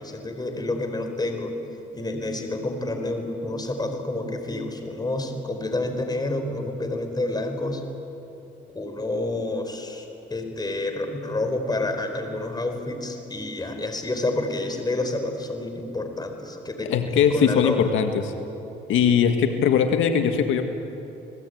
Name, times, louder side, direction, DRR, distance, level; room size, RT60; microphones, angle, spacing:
voice 1, 0.0-1.5 1.9-7.8 8.7-17.9, left 2 dB, 20° left, 5 dB, 4.2 m, -29 dB
voice 2, 16.8-18.3 18.9-20.7, left 7 dB, 85° left, 6 dB, 1.8 m, -20 dB
29.0 x 19.5 x 9.3 m, 3.0 s
cardioid pair, 90°, 20 cm